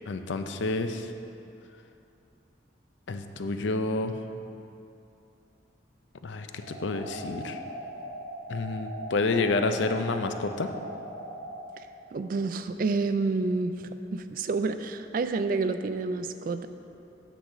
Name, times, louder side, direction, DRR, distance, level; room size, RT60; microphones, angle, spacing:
voice 1, 0.1-1.1 3.1-4.3 6.2-7.6 8.5-10.7, left 3 dB, 75° left, 7 dB, 0.5 m, -29 dB
sound 1, 6.6-11.6, equal, 70° right, 1.1 m, -40 dB
voice 2, 12.1-16.7, right 3 dB, 45° right, 9 dB, 0.3 m, -29 dB
9.2 x 4.0 x 7.1 m, 2.7 s
head